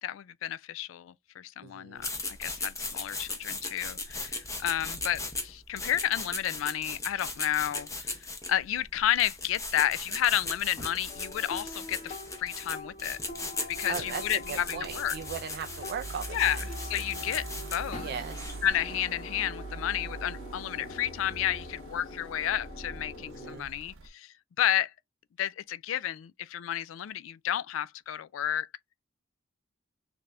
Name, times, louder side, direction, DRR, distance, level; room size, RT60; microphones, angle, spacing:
voice 1, 0.0-8.2 8.5-13.2 13.7-15.1 16.3-16.6 16.9-18.1 18.6-24.9 25.4-28.7, left 11 dB, 70° left, 0.3 m, -31 dB
voice 2, 1.6-2.1 13.9-16.6 18.0-18.6 23.3-23.7, right 6 dB, 55° right, 0.3 m, -38 dB
sound 1, 2.0-18.7, left 3 dB, 15° left, 0.7 m, -38 dB
sound 2, 11.1-23.6, left 2 dB, 35° left, 1.0 m, -45 dB
sound 3, 13.9-24.1, right 3 dB, 85° right, 0.8 m, -43 dB
3.3 x 2.5 x 3.3 m
head